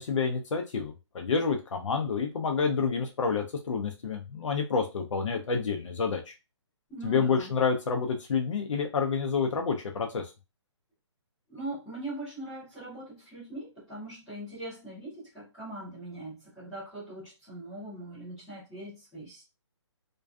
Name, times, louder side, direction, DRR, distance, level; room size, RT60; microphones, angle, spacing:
voice 1, 0.0-6.3 7.0-10.3, left 5 dB, 80° left, 0.5 m, -29 dB
voice 2, 6.9-7.5 11.5-19.4, right 1 dB, ahead, 0.3 m, -41 dB
2.5 x 2.2 x 2.3 m
hypercardioid pair, 175°, 16 cm